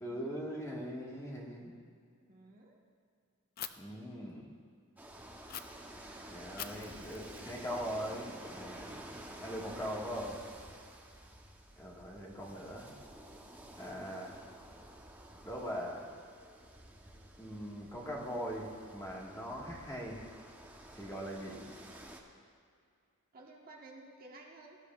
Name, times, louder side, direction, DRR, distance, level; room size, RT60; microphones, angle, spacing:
voice 1, 0.0-1.7 3.8-4.5 6.3-9.1 9.4-10.4 11.8-12.9 13.8-14.4 15.4-16.1 17.4-20.2 20.9-21.7, equal, 15° left, -3 dB, 1.6 m, -41 dB
voice 2, 2.2-2.8 6.1-6.6 9.5-9.9 23.3-24.8, right 2 dB, 40° right, -2 dB, 1.3 m, -55 dB
Fire, 3.6-3.7 5.5-5.6 6.6-8.5, left 10 dB, 45° left, 0.4 m, -46 dB
sound 1, 5.0-22.2, right 1 dB, 10° right, 0.9 m, -51 dB
18.0 x 11.5 x 2.4 m, 2.3 s
head